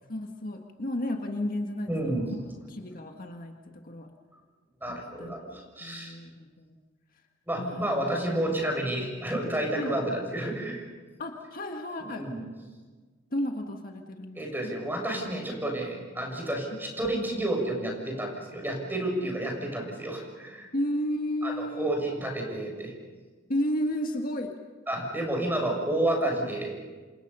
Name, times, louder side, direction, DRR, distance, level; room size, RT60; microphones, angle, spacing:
voice 1, 0.1-2.2 2.7-4.1 5.2-5.4 5.8-6.8 7.6-8.2 9.8-10.0 11.2-12.3 13.3-14.8 16.7-16.8 20.7-22.0 23.5-24.5, left 1 dB, 45° left, 3 dB, 1.7 m, -33 dB
voice 2, 1.9-2.3 4.8-6.1 7.5-10.8 12.0-12.4 14.3-20.7 21.4-22.9 24.9-26.7, right 1 dB, 10° right, 1 dB, 6.8 m, -30 dB
28.5 x 26.5 x 5.6 m, 1.4 s
head